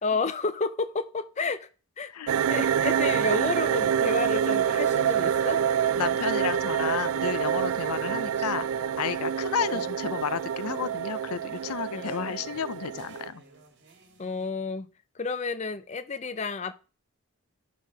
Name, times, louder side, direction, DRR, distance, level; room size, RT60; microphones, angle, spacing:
voice 1, 0.0-1.7 2.0-2.1 2.5-5.6 9.7-9.9 11.9-12.4 14.2-14.9 15.1-16.7, left 4 dB, 30° left, 0.5 m, -31 dB
sound 1, 2.3-13.3, right 8 dB, 70° right, 0.3 m, -27 dB
voice 2, 6.0-8.6 9.0-13.4, left 7 dB, 85° left, 0.5 m, -32 dB
sound 2, 7.3-14.5, right 3 dB, 50° right, 1.5 m, -56 dB
10.5 x 4.1 x 4.7 m
head